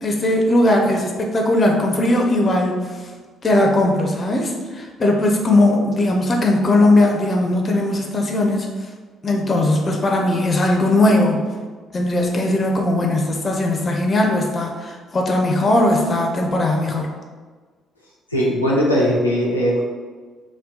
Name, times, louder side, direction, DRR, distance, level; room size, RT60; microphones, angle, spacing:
voice 1, 0.0-2.9 3.4-8.7 9.2-11.4 11.9-17.1, left 1 dB, 35° left, 1 dB, 0.5 m, -18 dB
voice 2, 18.3-19.8, equal, 90° left, -6 dB, 0.4 m, -19 dB
2.7 x 2.2 x 3.6 m, 1.4 s
figure-of-eight pair, 45°, 0 cm